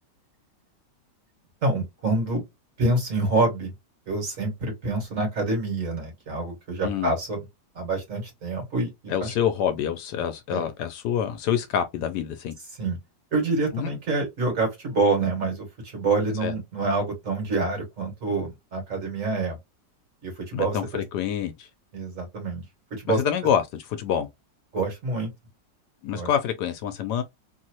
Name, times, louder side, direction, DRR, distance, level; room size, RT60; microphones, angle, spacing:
voice 1, 1.6-2.4 2.8-3.7 4.1-7.4 7.7-9.3 10.5-10.7 12.8-13.0 13.3-19.6 20.2-21.0 21.9-22.6 22.9-23.2 24.7-25.3 26.1-26.3, right 3 dB, 50° right, 1.7 m, -27 dB
voice 2, 9.1-12.5 13.7-13.9 16.4-16.5 20.5-21.7 23.2-24.3 26.0-27.2, left 9 dB, 75° left, 1.1 m, -26 dB
3.0 x 2.7 x 2.8 m
omnidirectional pair, 1.9 m